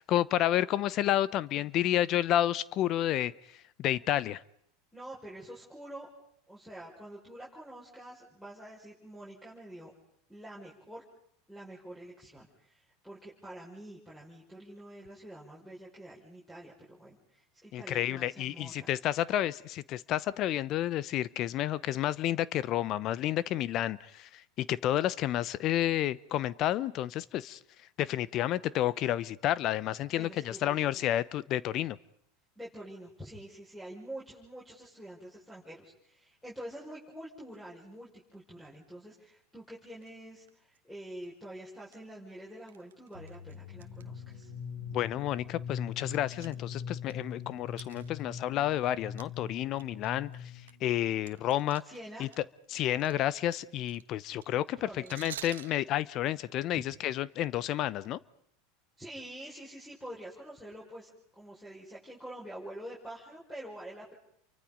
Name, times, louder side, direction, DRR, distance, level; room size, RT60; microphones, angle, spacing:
voice 1, 0.0-3.3 3.8-4.4 17.7-27.6 28.0-32.0 44.9-50.3 50.8-51.8 52.2-52.3 52.7-58.2, left 13 dB, 50° left, 0.8 m, -30 dB
voice 2, 4.9-6.1 6.5-9.9 10.3-11.0 11.5-18.9 30.1-31.0 32.6-44.5 51.8-52.3 54.8-55.3 56.7-56.8 59.0-64.1, right 1 dB, 5° left, 5.9 m, -47 dB
sound 1, 40.0-40.1 40.5-40.8 41.2-41.3 41.8-42.0 42.7-44.0 44.3-44.4 45.0-45.1 45.5-47.1 47.7-48.9 49.2-49.3 49.7-52.4 52.6-55.8, right 10 dB, 85° right, 1.2 m, -48 dB
sound 2, 43.1-50.8, left 6 dB, 80° left, 5.2 m, -42 dB
29.5 x 24.0 x 5.3 m
hypercardioid pair, 95°, 0 cm